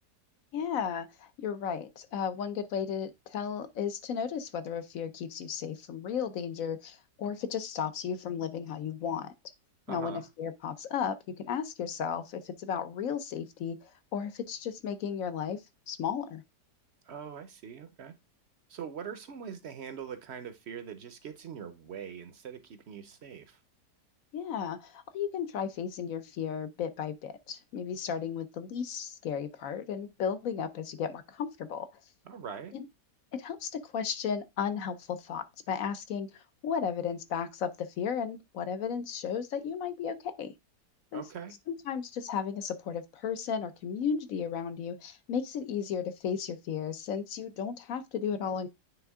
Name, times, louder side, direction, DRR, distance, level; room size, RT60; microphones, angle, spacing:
voice 1, 0.5-9.3 9.9-15.6 15.9-16.4 24.3-31.9 32.7-32.8 33.3-36.3 36.6-40.5 41.1-41.2 41.7-48.7, left 7 dB, 65° left, 1.0 m, -34 dB
voice 2, 9.9-10.3 17.1-18.1 18.7-23.6 32.3-32.7 41.1-41.5, right 7 dB, 55° right, 0.8 m, -42 dB
9.1 x 3.4 x 3.5 m
omnidirectional pair, 1.8 m